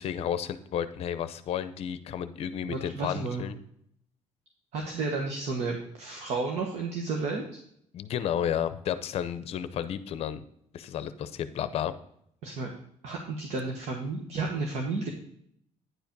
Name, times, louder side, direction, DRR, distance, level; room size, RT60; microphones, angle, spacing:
voice 1, 0.0-3.6 7.9-10.4 10.7-11.9, left 9 dB, 50° left, 12 dB, 0.7 m, -32 dB
voice 2, 2.7-3.4 4.7-7.4 12.4-12.7 13.0-15.1, right 3 dB, 60° right, 2 dB, 1.4 m, -32 dB
10.0 x 5.0 x 5.3 m, 0.68 s
cardioid pair, 150°, 13 cm